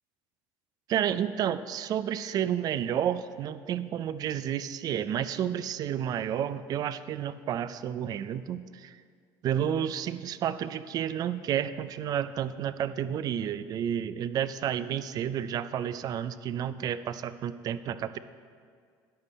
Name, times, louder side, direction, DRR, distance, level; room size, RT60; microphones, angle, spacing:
voice 1, 0.9-9.0 9.4-18.2, right 9 dB, 45° right, 14 dB, 0.4 m, -31 dB
10.5 x 8.3 x 4.1 m, 2.1 s
cardioid pair, 115°, 9 cm